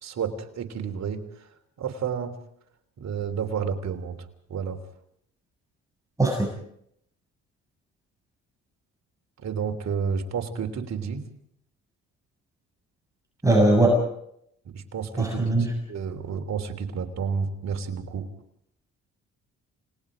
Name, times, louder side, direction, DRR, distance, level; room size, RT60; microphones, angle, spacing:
voice 1, 0.0-1.5 1.8-2.4 3.0-4.2 4.5-4.8 9.4-11.2 14.7-18.3, right 6 dB, 60° right, 4 dB, 3.3 m, -31 dB
voice 2, 13.4-14.0 15.2-15.7, right 1 dB, 10° right, 0 dB, 7.1 m, -20 dB
29.5 x 19.0 x 5.1 m, 0.71 s
cardioid pair, 90°, 30 cm